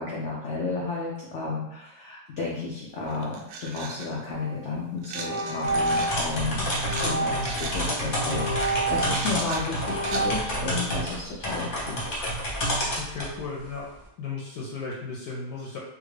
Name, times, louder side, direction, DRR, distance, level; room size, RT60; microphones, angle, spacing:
voice 1, 0.0-12.1, left 3 dB, 90° left, -4 dB, 0.6 m, -32 dB
sound 1, 2.6-2.7 3.1-4.1 5.0-10.2, right 4 dB, 90° right, 1.3 m, -39 dB
sound 2, 4.3-4.5 5.1-6.2 6.8-7.6 8.1-9.4 9.8-10.4, right 2 dB, 70° right, 1.3 m, -29 dB
sound 3, 5.6-13.4, equal, 40° left, 0.8 m, -29 dB
voice 2, 12.9-13.9 14.2-15.8, left 4 dB, 70° left, -3 dB, 1.1 m, -35 dB
3.5 x 2.3 x 3.2 m, 0.88 s
omnidirectional pair, 2.0 m